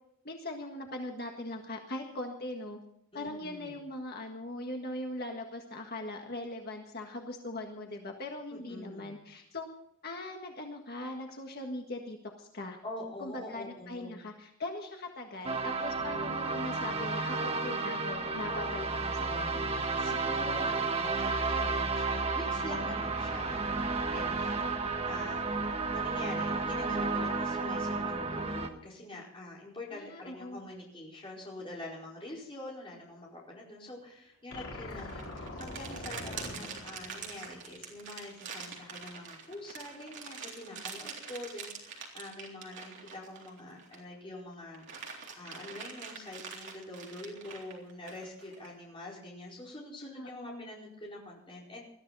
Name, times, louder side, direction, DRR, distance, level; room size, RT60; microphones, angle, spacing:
voice 1, 0.2-2.8 3.1-9.7 10.0-12.8 13.2-19.6 21.5-21.6 29.9-30.6 50.1-50.7, left 2 dB, 45° left, 2 dB, 1.7 m, -40 dB
voice 2, 3.1-3.8 8.5-9.2 12.8-14.2 20.0-24.7 25.0-51.9, left 1 dB, 25° left, -4 dB, 4.8 m, -45 dB
sound 1, 15.4-28.7, right 3 dB, 25° right, 1.2 m, -32 dB
sound 2, 34.5-37.8, left 2 dB, 60° left, 3.5 m, -43 dB
sound 3, 34.9-44.1 44.5-48.7, right 5 dB, 55° right, 3.6 m, -45 dB
20.5 x 13.5 x 4.1 m, 0.73 s
head